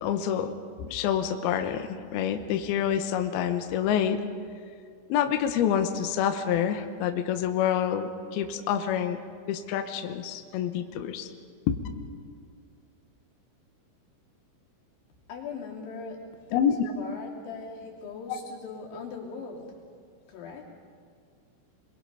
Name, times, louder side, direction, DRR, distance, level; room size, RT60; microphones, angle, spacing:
voice 1, 0.0-4.2 5.1-9.2 9.5-11.3 11.7-11.8 16.5-16.9, left 9 dB, 80° left, 7 dB, 2.2 m, -27 dB
voice 2, 15.3-19.7 20.3-20.6, left 4 dB, 65° left, -2 dB, 5.2 m, -40 dB
28.0 x 22.0 x 5.5 m, 2.2 s
omnidirectional pair, 6.0 m